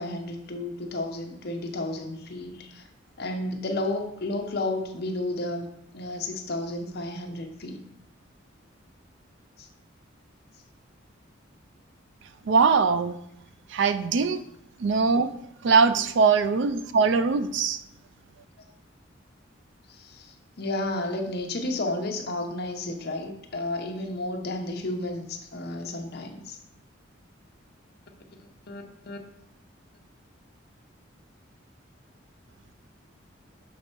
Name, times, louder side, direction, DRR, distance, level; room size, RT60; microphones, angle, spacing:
voice 1, 0.0-2.8 3.2-5.7 5.9-7.8 9.6-9.7 19.9-26.6 28.7-29.2, left 2 dB, 55° left, 3 dB, 0.7 m, -32 dB
voice 2, 12.5-13.1 13.7-14.4 14.8-15.3 15.6-17.8, right 5 dB, 65° right, 12 dB, 0.4 m, -21 dB
6.6 x 3.2 x 4.5 m, 0.75 s
head